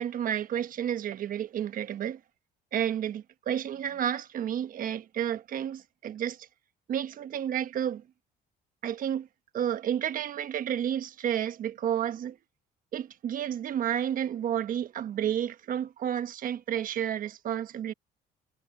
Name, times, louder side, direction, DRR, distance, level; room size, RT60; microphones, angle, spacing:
voice 1, 0.0-2.2 2.7-6.5 6.9-8.0 8.8-9.3 9.5-12.4 12.9-17.9, right 10 dB, 55° right, 1.3 m, -31 dB
cardioid pair, 110°, 17 cm